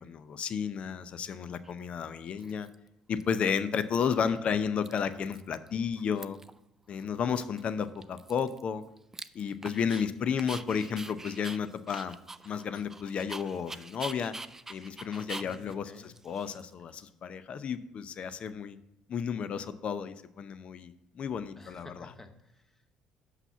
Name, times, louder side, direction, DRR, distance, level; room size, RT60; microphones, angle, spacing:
voice 1, 0.0-2.7 3.1-6.4 6.9-8.8 9.3-12.2 12.4-14.3 14.7-18.8 19.1-22.1, left 7 dB, 50° left, 13 dB, 0.6 m, -32 dB
Dog, 1.6-1.7 2.4-2.9 3.2-4.0 4.2-4.4 4.6-5.7 5.9-6.6 6.9-7.0 7.4-10.0 10.4-17.0, right 2 dB, 15° right, 0.4 m, -45 dB
voice 2, 4.0-4.5 15.4-16.1 21.6-23.0, left 2 dB, 15° left, 7 dB, 1.1 m, -52 dB
5.9 x 5.8 x 6.8 m, 0.88 s
hypercardioid pair, 65°, 3 cm